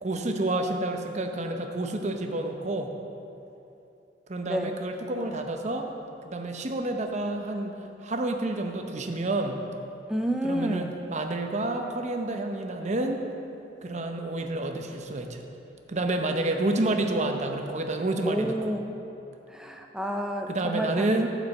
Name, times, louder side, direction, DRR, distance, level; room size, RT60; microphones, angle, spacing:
voice 1, 0.0-2.9 4.3-5.9 6.2-7.7 8.0-9.6 10.4-13.2 13.8-15.4 15.9-18.6 20.5-21.3, right 2 dB, 40° right, 4 dB, 0.7 m, -29 dB
voice 2, 4.4-4.8 10.1-11.0 18.2-18.9 19.5-21.1, equal, 5° right, 3 dB, 0.4 m, -30 dB
9.4 x 5.1 x 7.4 m, 2.8 s
head